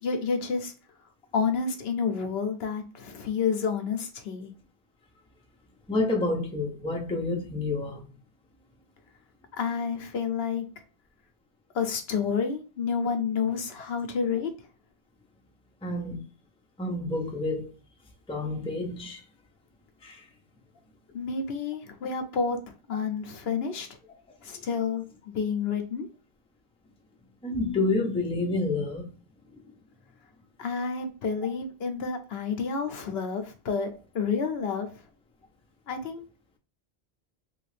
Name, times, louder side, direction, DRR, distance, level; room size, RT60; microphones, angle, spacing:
voice 1, 0.0-0.7 1.3-4.5 9.6-10.6 11.7-14.5 21.1-22.6 22.9-23.9 24.4-25.0 25.3-26.1 30.6-35.0 35.9-36.3, left 5 dB, 75° left, 0.9 m, -29 dB
voice 2, 5.9-8.1 15.8-16.3 16.8-17.7 18.3-19.2 20.0-20.3 27.4-29.1, left 2 dB, 5° left, 0.5 m, -29 dB
3.5 x 2.4 x 3.2 m
omnidirectional pair, 1.1 m